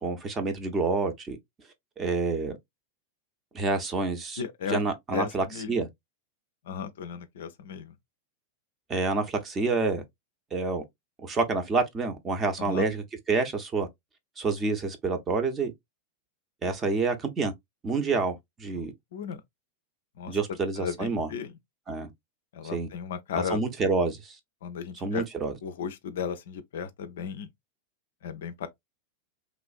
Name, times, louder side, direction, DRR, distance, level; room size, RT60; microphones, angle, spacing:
voice 1, 0.0-1.4 2.0-2.6 3.5-4.4 4.7-5.9 8.9-10.0 10.5-10.8 11.2-13.9 14.4-15.7 16.6-17.5 17.8-18.9 20.3-21.3 21.9-22.1 22.6-22.9 23.5-24.4 24.9-25.5, right 3 dB, 20° right, 0.7 m, -28 dB
voice 2, 4.4-4.8 5.1-5.7 6.7-7.9 12.6-12.9 18.7-18.9 19.1-19.4 20.2-20.4 20.8-21.5 22.5-23.6 24.6-25.2 25.6-27.5 28.2-28.7, left 7 dB, 60° left, 0.4 m, -35 dB
3.1 x 2.4 x 2.4 m
figure-of-eight pair, 90°, 0 cm